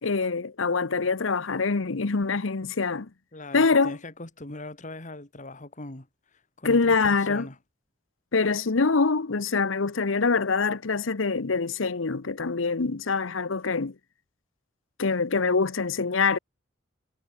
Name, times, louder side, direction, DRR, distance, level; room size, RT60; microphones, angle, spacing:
voice 1, 0.0-3.1 3.5-4.0 6.6-7.5 8.3-13.9 15.0-16.4, left 4 dB, 85° left, 0.9 m, -24 dB
voice 2, 3.3-7.6, left 2 dB, 40° left, 2.6 m, -41 dB
head